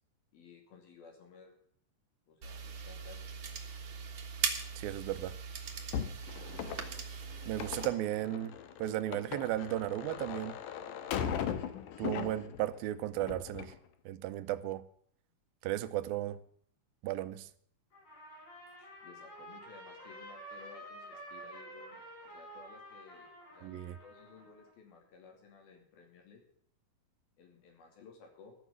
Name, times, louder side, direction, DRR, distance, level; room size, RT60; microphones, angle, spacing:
voice 1, 0.3-1.6 2.3-3.2 18.8-26.4 27.4-28.6, left 5 dB, 90° left, 4.6 m, -56 dB
sound 1, 2.4-7.9, right 6 dB, 50° right, 1.5 m, -40 dB
voice 2, 4.8-5.4 7.5-10.6 12.0-13.7 14.1-14.9 15.6-16.4 17.0-17.5 23.6-24.0, right 13 dB, 85° right, 2.5 m, -35 dB
sound 2, 5.9-12.8 13.1-13.8, left 8 dB, 70° left, 2.3 m, -39 dB
Trumpet, 17.9-24.7, right 1 dB, 45° left, 8.3 m, -50 dB
14.0 x 6.4 x 9.5 m
omnidirectional pair, 4.1 m